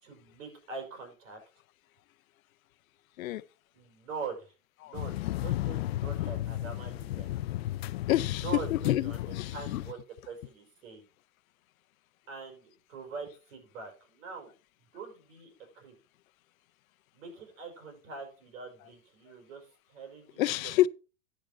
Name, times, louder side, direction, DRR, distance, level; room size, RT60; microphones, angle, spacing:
voice 1, 0.0-1.4 3.7-4.5 4.8-7.3 8.4-9.2 9.5-10.0 10.3-11.1 12.3-14.5 14.9-15.9 17.1-20.4, right 5 dB, 75° right, 5.7 m, -43 dB
sound 1, 4.9-9.9, left 15 dB, 50° left, 0.4 m, -34 dB
voice 2, 8.1-9.8 20.4-20.9, left 14 dB, 85° left, 0.7 m, -29 dB
10.5 x 7.8 x 4.4 m
supercardioid pair, 175°, 40 cm